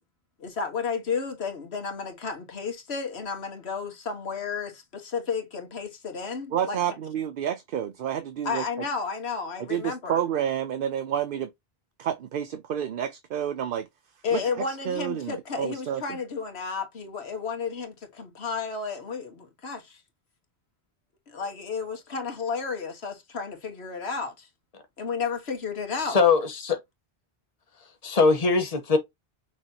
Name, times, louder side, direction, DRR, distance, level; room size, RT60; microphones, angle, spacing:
voice 1, 0.4-6.8 8.4-10.2 14.2-20.0 21.3-24.5 25.0-26.2, left 5 dB, 90° left, 1.6 m, -32 dB
voice 2, 6.5-8.6 9.7-11.5 12.0-13.9 14.3-14.4 14.7-16.0, right 9 dB, 60° right, 0.8 m, -29 dB
voice 3, 26.0-26.8 28.0-29.0, left 4 dB, 40° left, 1.2 m, -21 dB
6.2 x 3.1 x 2.7 m
omnidirectional pair, 1.0 m